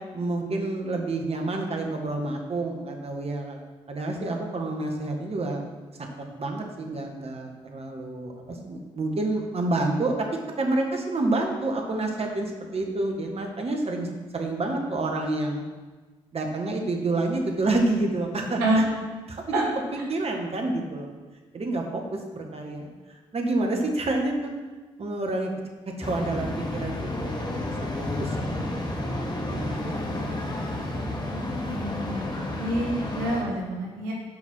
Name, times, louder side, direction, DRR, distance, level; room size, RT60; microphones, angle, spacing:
voice 1, 0.1-3.6 3.9-5.7 6.4-10.3 10.6-14.1 14.3-15.6 16.3-18.8 19.3-21.1 21.5-24.5 25.0-25.5 26.0-27.9 28.2-30.4, right 2 dB, 40° right, 2 dB, 1.6 m, -29 dB
sound 1, 26.0-33.4, left 1 dB, 30° left, 1.9 m, -31 dB
voice 2, 31.3-34.1, right 1 dB, 80° right, -2 dB, 1.2 m, -28 dB
7.5 x 4.8 x 6.1 m, 1.3 s
hypercardioid pair, 40°, 15 cm